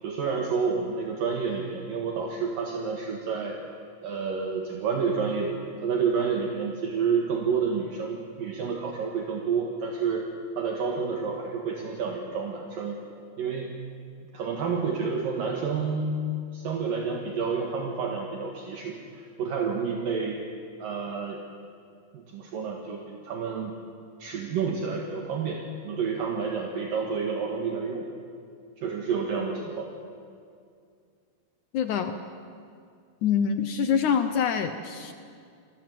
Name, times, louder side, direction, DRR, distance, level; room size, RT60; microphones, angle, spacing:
voice 1, 0.0-3.6 4.0-10.3 10.6-13.0 13.4-13.7 14.3-20.4 20.8-21.4 22.1-23.7 24.2-28.1 28.8-29.9, right 5 dB, 65° right, 1 dB, 3.1 m, -29 dB
voice 2, 31.7-32.2 33.2-35.1, left 7 dB, 70° left, 8 dB, 1.9 m, -25 dB
27.5 x 21.5 x 7.8 m, 2.3 s
omnidirectional pair, 4.7 m